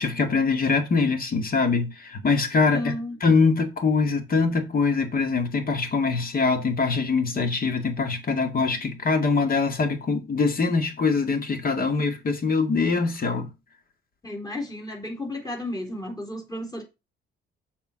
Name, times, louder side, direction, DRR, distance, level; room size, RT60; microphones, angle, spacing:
voice 1, 0.0-2.8 3.2-13.5, left 4 dB, 45° left, 2.1 m, -23 dB
voice 2, 2.7-3.2 14.2-16.8, left 1 dB, 20° left, 3.9 m, -33 dB
7.2 x 4.7 x 6.3 m
cardioid pair, 90°, 20 cm